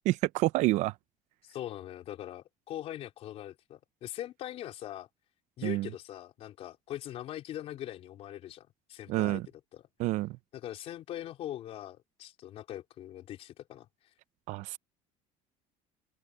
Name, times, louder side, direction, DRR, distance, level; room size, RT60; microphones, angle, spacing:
voice 1, 0.1-0.9 5.6-5.9 9.1-9.4 10.0-10.4 14.5-14.8, right 18 dB, 60° right, 0.5 m, -28 dB
voice 2, 1.4-5.1 5.6-9.4 9.7-9.8 10.5-13.9, left 12 dB, 50° left, 3.8 m, -42 dB
open air
cardioid pair, 160°, 13 cm